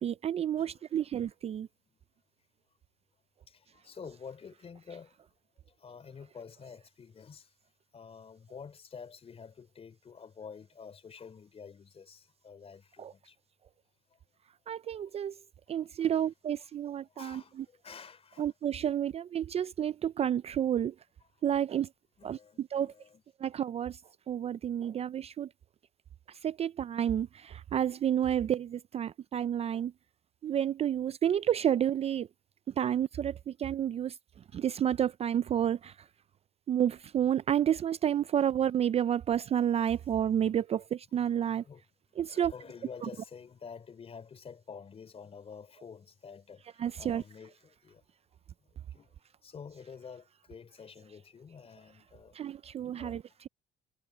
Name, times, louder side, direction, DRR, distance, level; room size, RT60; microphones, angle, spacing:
voice 1, 0.0-1.7 13.0-13.1 14.7-15.4 15.7-17.7 18.4-20.9 21.4-21.9 22.2-22.9 23.4-24.0 24.3-25.5 26.3-29.9 30.4-32.3 32.7-34.2 34.5-36.1 36.7-41.6 42.2-42.5 43.0-43.1 46.8-47.2 52.3-53.5, right 10 dB, 35° right, 0.4 m, -30 dB
voice 2, 3.5-5.2 5.7-7.5 7.9-13.4 17.1-18.5 22.2-23.2 41.6-41.8 42.3-48.0 48.9-52.3 52.9-53.2, left 6 dB, 35° left, 3.7 m, -49 dB
cardioid pair, 110°, 17 cm